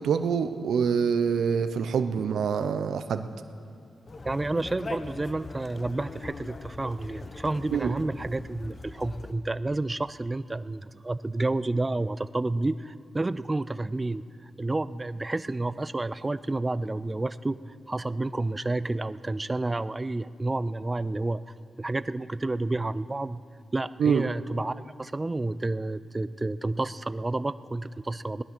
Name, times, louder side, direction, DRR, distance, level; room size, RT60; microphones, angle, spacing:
voice 1, 0.0-3.3 7.7-7.9 24.0-24.3, right 6 dB, 80° right, 10 dB, 0.5 m, -25 dB
Conversation, 4.1-9.3, left 3 dB, 40° left, 0.8 m, -41 dB
voice 2, 4.2-17.6 17.9-23.4 23.7-28.4, right 2 dB, 20° right, 15 dB, 0.3 m, -30 dB
18.0 x 11.0 x 6.0 m, 2.4 s
cardioid pair, 100°, 0 cm